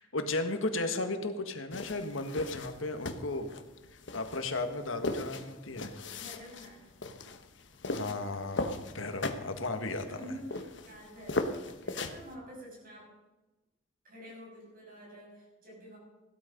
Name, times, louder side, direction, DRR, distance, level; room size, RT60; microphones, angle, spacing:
voice 1, 0.0-3.5 4.1-6.0 7.9-10.2, left 2 dB, 80° left, 7 dB, 1.7 m, -35 dB
sound 1, 1.7-12.3, left 2 dB, 60° left, 1.1 m, -38 dB
voice 2, 6.1-6.8 10.0-13.1 14.0-16.0, equal, 45° right, -2 dB, 6.8 m, -48 dB
16.5 x 12.5 x 5.3 m, 1.1 s
head